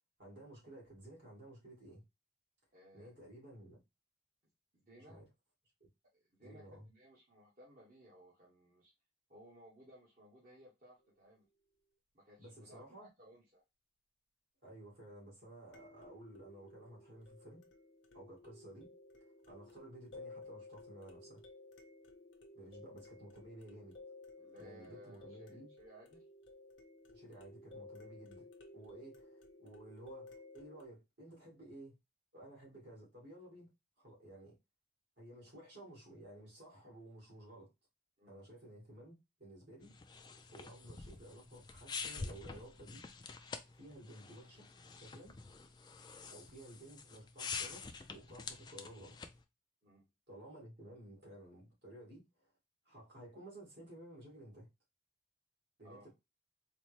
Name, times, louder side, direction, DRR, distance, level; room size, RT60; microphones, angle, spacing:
voice 1, 0.2-2.0 2.9-3.8 5.0-5.3 5.8-5.9 6.4-6.9 12.4-13.1 14.6-17.6 18.1-18.9 19.5-21.4 22.5-24.0 24.6-25.7 27.1-28.5 28.7-32.0 32.3-34.6 35.2-37.7 38.3-39.9 40.5-43.0 43.8-44.7 45.0-45.3 46.3-49.2 50.3-52.5 52.9-54.7 55.8-56.1, right 1 dB, 65° right, 2.1 m, -54 dB
voice 2, 2.7-3.1 4.7-5.2 6.1-8.9 9.3-11.5 12.1-13.6 24.4-26.2 38.2-38.5 46.2-46.4 49.8-50.1 55.8-56.1, equal, 45° right, 1.2 m, -60 dB
sound 1, 11.0-11.1 15.7-30.9, left 2 dB, 80° left, 0.8 m, -56 dB
sound 2, 39.8-49.4, left 4 dB, 25° left, 0.3 m, -47 dB
4.1 x 2.1 x 3.1 m
head